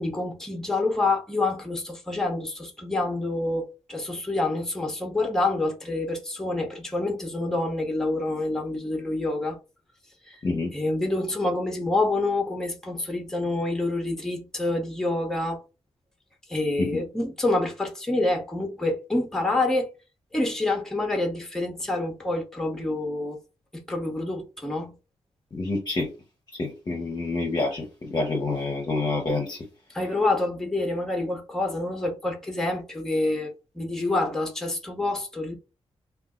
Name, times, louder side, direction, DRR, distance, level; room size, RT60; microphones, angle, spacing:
voice 1, 0.0-9.6 10.3-10.4 10.7-15.6 16.5-19.9 20.3-23.4 23.7-24.9 29.9-35.6, left 2 dB, 5° left, 0.7 m, -27 dB
voice 2, 25.5-26.1 26.6-29.6, left 3 dB, 40° left, 0.7 m, -27 dB
2.6 x 2.3 x 3.5 m
cardioid pair, 100°, 11 cm